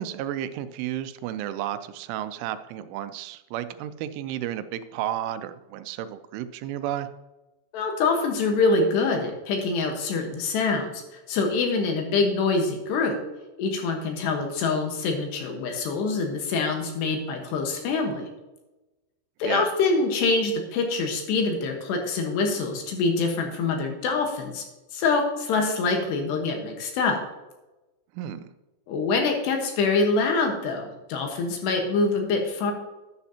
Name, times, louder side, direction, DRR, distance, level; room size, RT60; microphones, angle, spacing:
voice 1, 0.0-7.1 19.4-19.7 28.2-28.5, right 11 dB, 85° right, 12 dB, 3.1 m, -32 dB
voice 2, 7.7-11.0 11.3-13.2 13.6-18.3 19.4-24.6 24.9-27.2 28.9-32.7, left 3 dB, 70° left, 3 dB, 3.2 m, -25 dB
11.5 x 10.5 x 2.8 m, 1.1 s
omnidirectional pair, 5.5 m